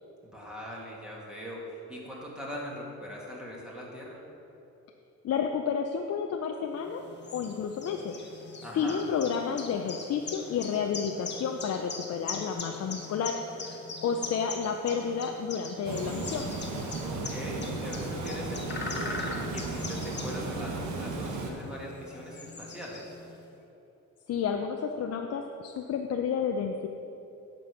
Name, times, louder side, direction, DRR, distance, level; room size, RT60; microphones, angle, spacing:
voice 1, 0.2-4.2 8.6-9.0 17.0-23.2, equal, 5° right, -5 dB, 2.3 m, -41 dB
voice 2, 5.2-7.0 7.3-8.1 8.7-13.3 14.0-16.5 24.3-26.9, left 6 dB, 55° left, 3 dB, 0.6 m, -31 dB
sound 1, 6.8-23.4, left 3 dB, 35° left, 1.2 m, -41 dB
Water, 15.8-21.5, right 3 dB, 70° right, 1.3 m, -35 dB
8.9 x 5.4 x 6.6 m, 3.0 s
cardioid pair, 90°, 30 cm